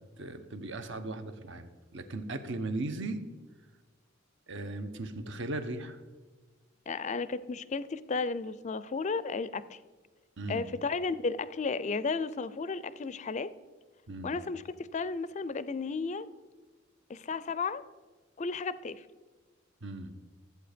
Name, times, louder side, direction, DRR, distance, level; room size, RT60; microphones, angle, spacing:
voice 1, 0.2-3.2 4.5-6.0 10.4-10.7 14.1-14.4 19.8-20.1, right 2 dB, 60° right, 9 dB, 0.9 m, -37 dB
voice 2, 6.9-9.8 10.5-13.5 14.2-16.3 17.1-17.8 18.4-19.0, left 4 dB, 35° left, 16 dB, 0.4 m, -33 dB
14.0 x 8.1 x 5.1 m, 1.3 s
head